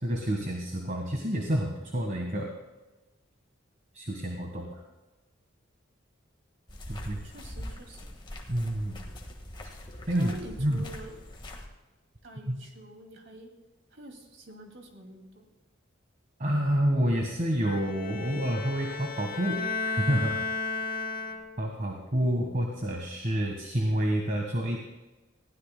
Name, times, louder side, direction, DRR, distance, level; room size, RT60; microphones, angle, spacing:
voice 1, 0.0-2.5 3.9-4.8 6.9-7.2 8.5-9.0 9.6-9.7 10.1-10.3 10.6-10.8 12.5-12.6 16.4-20.4 21.6-24.8, right 1 dB, 40° right, 1 dB, 1.4 m, -28 dB
sound 1, 6.7-11.7, left 1 dB, 25° left, 1.6 m, -43 dB
voice 2, 6.9-8.2 10.1-11.2 12.2-13.5 13.9-15.5, right 1 dB, 65° right, 2 dB, 2.4 m, -47 dB
Bowed string instrument, 17.6-21.8, left 4 dB, 45° left, 1.0 m, -34 dB
20.5 x 15.5 x 2.2 m, 1.1 s
head